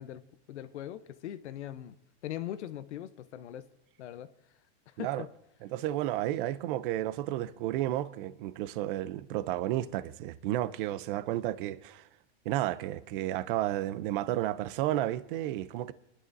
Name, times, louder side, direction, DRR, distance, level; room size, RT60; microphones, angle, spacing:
voice 1, 0.0-2.0 2.2-3.7 4.0-4.3 5.0-5.3, left 12 dB, 80° left, 0.9 m, -40 dB
voice 2, 5.6-12.0 12.5-15.9, right 14 dB, 50° right, 0.6 m, -32 dB
23.0 x 11.5 x 2.7 m
supercardioid pair, 140°, 34 cm